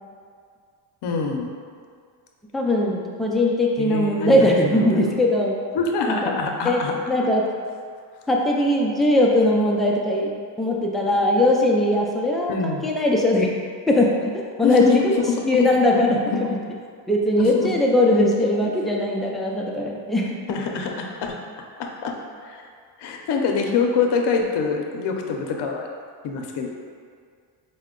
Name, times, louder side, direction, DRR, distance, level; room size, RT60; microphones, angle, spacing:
voice 1, 1.0-1.6 3.8-4.5 4.7-5.0 5.7-6.9 12.5-12.9 14.6-15.6 16.1-16.5 17.4-17.7 20.5-21.4 21.8-22.7 23.0-25.9 26.2-26.7, left 4 dB, 60° left, 2 dB, 0.7 m, -25 dB
voice 2, 2.5-5.6 6.1-6.3 6.6-6.8 7.1-7.4 8.3-10.3 10.6-13.5 13.9-14.3 14.6-15.1 15.4-16.2 17.1-20.3, left 1 dB, ahead, -2 dB, 0.3 m, -20 dB
4.4 x 2.2 x 3.7 m, 2.1 s
cardioid pair, 105°, 45 cm